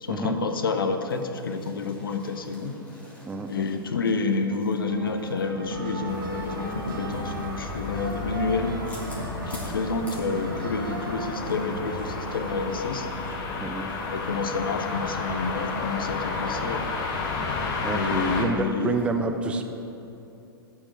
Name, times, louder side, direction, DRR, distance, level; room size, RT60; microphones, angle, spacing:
voice 1, 0.0-2.7 3.5-8.8 9.5-13.1 14.1-16.8 17.9-19.0, left 4 dB, 65° left, 7 dB, 0.8 m, -29 dB
sound 1, 0.8-11.1 11.3-11.5 11.8-15.0 15.4-15.5 15.9-16.0 16.4-17.0 17.4-17.5 17.8-19.1, left 1 dB, 10° left, 1.8 m, -51 dB
voice 2, 3.2-3.7 13.5-13.9 17.8-18.6 18.8-19.7, right 3 dB, 10° right, 5 dB, 0.4 m, -29 dB
sound 2, 4.9-12.7, right 2 dB, 60° right, 1.2 m, -36 dB
sound 3, 6.1-18.5, left 4 dB, 40° left, 1.1 m, -32 dB
8.5 x 4.7 x 7.5 m, 2.8 s
figure-of-eight pair, 105°, 13 cm